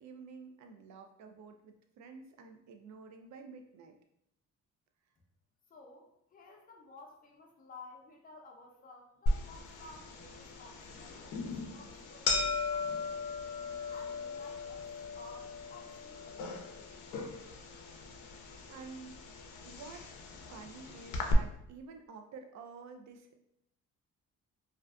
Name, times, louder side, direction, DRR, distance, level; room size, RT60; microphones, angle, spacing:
voice 1, 0.0-4.0 18.7-19.2 19.6-20.1 20.5-23.3, right 5 dB, 65° right, 5 dB, 0.4 m, -50 dB
voice 2, 5.7-13.3 13.9-14.9 15.1-17.1, left 3 dB, 30° left, 1 dB, 0.5 m, -55 dB
sound 1, 9.3-21.3, left 3 dB, 80° left, 0.5 m, -38 dB
2.4 x 2.2 x 2.4 m, 0.76 s
cardioid pair, 90°, 30 cm